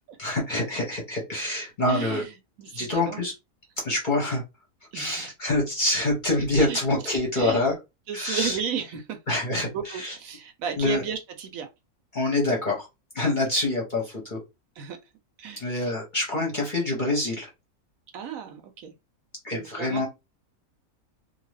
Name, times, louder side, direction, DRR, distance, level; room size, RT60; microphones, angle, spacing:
voice 1, 0.2-2.2 2.7-3.3 3.8-4.4 4.9-7.7 8.1-8.6 9.3-10.1 10.8-11.0 12.1-12.9 13.1-14.4 15.6-17.5 19.4-20.1, left 2 dB, 40° left, 0.8 m, -26 dB
voice 2, 1.8-3.2 4.9-5.3 6.6-6.8 7.3-7.6 8.1-9.2 9.7-11.7 14.8-15.0 15.4-15.9 18.1-18.9 19.5-20.1, right 7 dB, 70° right, 0.9 m, -34 dB
2.6 x 2.3 x 3.1 m
omnidirectional pair, 1.6 m